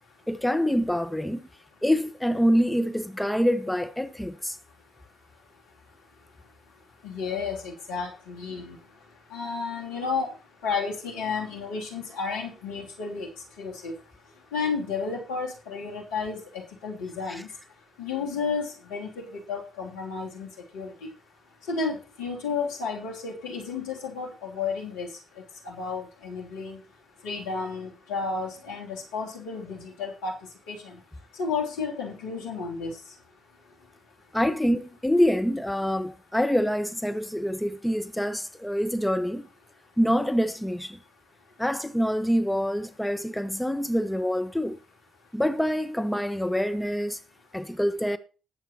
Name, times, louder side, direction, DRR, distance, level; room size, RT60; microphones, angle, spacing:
voice 1, 0.3-1.5 1.8-4.6 34.3-39.5 40.0-41.0 41.6-44.8 45.3-47.2 47.5-48.2, equal, 5° left, 1.2 m, -26 dB
voice 2, 7.0-8.8 9.3-10.3 10.6-13.3 13.6-13.9 14.5-17.5 18.0-20.5 20.7-20.9 21.7-25.1 25.6-26.8 27.2-30.3 30.7-31.0 31.4-32.9, left 5 dB, 75° left, 2.9 m, -32 dB
19.5 x 7.7 x 2.9 m
hypercardioid pair, 45°, 0 cm